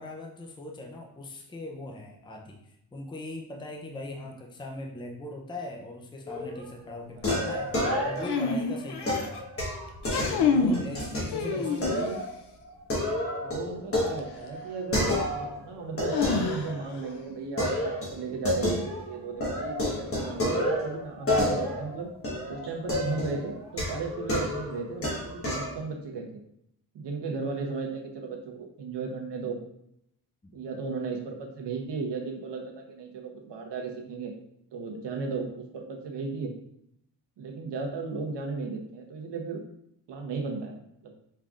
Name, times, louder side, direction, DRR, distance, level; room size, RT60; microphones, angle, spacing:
voice 1, 0.0-2.6 2.9-7.7 8.0-9.5 10.2-12.0 30.4-30.6, left 2 dB, 10° left, 1 dB, 0.5 m, -40 dB
sound 1, 6.3-6.7 7.2-8.5 9.1-11.3 11.8-12.3 12.6-15.6 16.0-17.1 17.6-19.1 19.4-25.7, left 1 dB, 35° left, 1.2 m, -30 dB
sound 2, 8.2-9.4 10.0-10.9 11.3-12.2 14.2-14.3 16.1-17.0, left 5 dB, 70° left, 0.6 m, -28 dB
voice 2, 11.0-12.2 13.4-22.1 22.5-26.4 26.9-29.6 30.5-34.3 34.7-36.5 37.4-39.6 40.1-41.1, right 4 dB, 90° right, 1 dB, 0.9 m, -35 dB
5.5 x 3.5 x 2.4 m, 0.74 s
wide cardioid pair, 160°, 41 cm